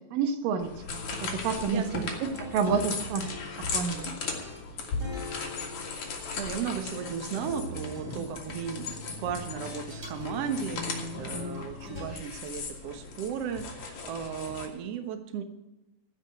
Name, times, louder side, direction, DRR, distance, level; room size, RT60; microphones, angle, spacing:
voice 1, 0.1-0.7 1.2-3.3 3.7-4.2, right 6 dB, 90° right, 8 dB, 2.8 m, -29 dB
sound 1, 0.6-14.7, left 4 dB, 60° left, 3.1 m, -37 dB
sound 2, 0.9-12.1, left 2 dB, 30° right, 3.1 m, -43 dB
voice 2, 1.7-2.1 6.0-15.4, right 7 dB, 60° right, 6 dB, 1.9 m, -35 dB
15.0 x 6.1 x 7.9 m, 1.0 s
omnidirectional pair, 3.8 m